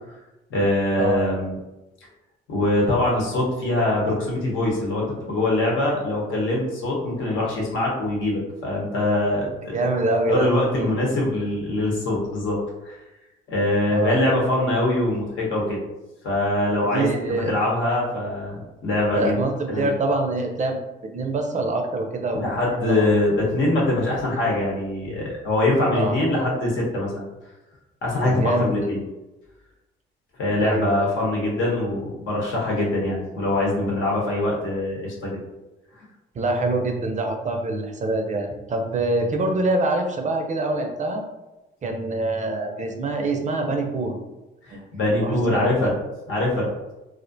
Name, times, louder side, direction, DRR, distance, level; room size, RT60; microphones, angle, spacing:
voice 1, 0.5-1.6 2.5-9.8 10.3-12.6 12.8-13.0 13.5-15.8 16.2-19.3 19.7-19.9 22.3-27.3 28.0-29.0 30.4-35.4 35.9-36.1 44.7-46.0 46.3-46.7, left 1 dB, 75° left, -3 dB, 0.9 m, -23 dB
voice 2, 9.7-10.5 10.7-10.9 13.9-14.2 16.9-17.5 19.1-20.8 21.1-22.5 22.8-23.1 25.9-26.1 28.2-28.8 30.6-31.1 36.4-41.2 41.8-44.1 44.7-44.8 45.2-45.9, right 2 dB, 40° right, 3 dB, 0.4 m, -25 dB
2.4 x 2.1 x 2.6 m, 1.0 s
cardioid pair, 90°, 20 cm